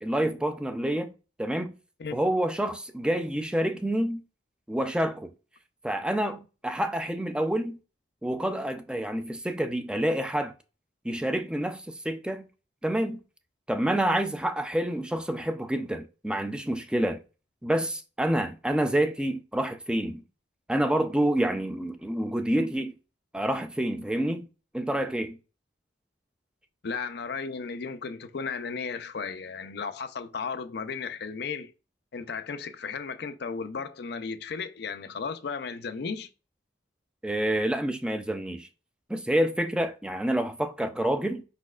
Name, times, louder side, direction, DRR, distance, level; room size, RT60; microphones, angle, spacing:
voice 1, 0.0-1.1 1.4-1.7 2.1-4.2 4.7-5.3 5.8-7.8 8.2-10.5 11.0-12.5 12.8-13.2 13.7-17.2 17.6-20.2 20.7-22.9 23.3-24.5 24.7-25.4 37.2-38.7 39.1-41.4, right 1 dB, 5° right, 0.4 m, -28 dB
voice 2, 26.8-31.7 32.1-36.3, left 5 dB, 65° left, 0.5 m, -35 dB
5.2 x 4.2 x 2.4 m
head